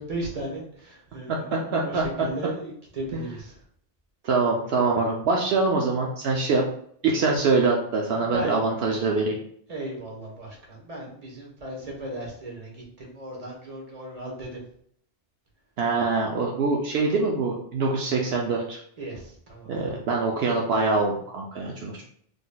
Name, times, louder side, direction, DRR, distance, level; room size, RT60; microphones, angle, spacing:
voice 1, 0.0-3.5 8.2-8.5 9.7-14.6 19.0-19.9, right 1 dB, 40° right, -2 dB, 1.1 m, -36 dB
voice 2, 1.3-2.3 3.1-3.2 4.2-6.6 7.0-9.4 15.8-18.8 19.7-22.0, right 3 dB, 75° right, 0 dB, 0.8 m, -24 dB
3.9 x 3.2 x 2.2 m, 0.63 s
omnidirectional pair, 1.1 m